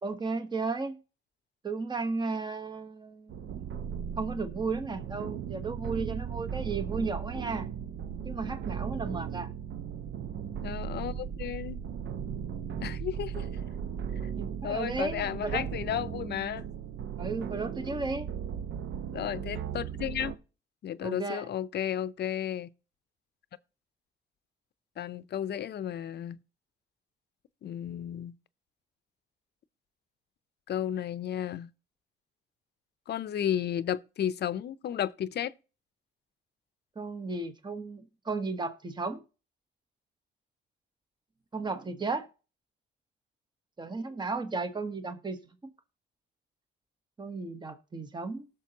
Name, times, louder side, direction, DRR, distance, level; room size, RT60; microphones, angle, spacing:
voice 1, 0.0-1.0 1.6-3.7 4.2-7.7 8.2-9.5 14.4-15.6 17.2-18.3 21.0-21.5 37.0-39.2 41.5-42.3 43.8-45.5 47.2-48.5, right 3 dB, 20° right, 1.1 m, -34 dB
sound 1, 3.3-20.3, right 8 dB, 70° right, 0.8 m, -37 dB
voice 2, 10.6-11.8 12.8-13.5 14.6-16.7 19.1-20.3 20.8-22.7 25.0-26.4 27.6-28.3 30.7-31.7 33.1-35.5, left 10 dB, 55° left, 0.6 m, -33 dB
19.0 x 6.6 x 2.9 m
cardioid pair, 90°, 20 cm